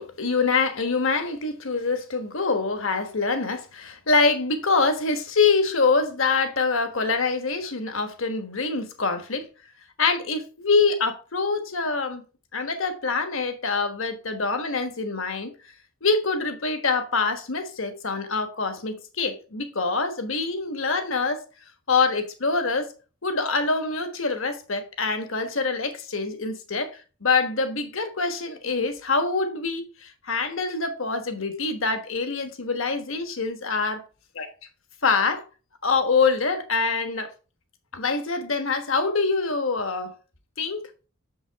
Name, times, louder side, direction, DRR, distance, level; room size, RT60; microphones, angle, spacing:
voice 1, 0.0-9.5 10.0-12.2 12.5-15.5 16.0-21.4 21.9-22.9 23.2-26.9 27.2-34.0 34.4-34.5 35.0-35.4 35.8-37.3 37.9-40.1 40.6-40.8, left 4 dB, 65° left, 1.3 m, -25 dB
7.0 x 5.4 x 4.6 m
head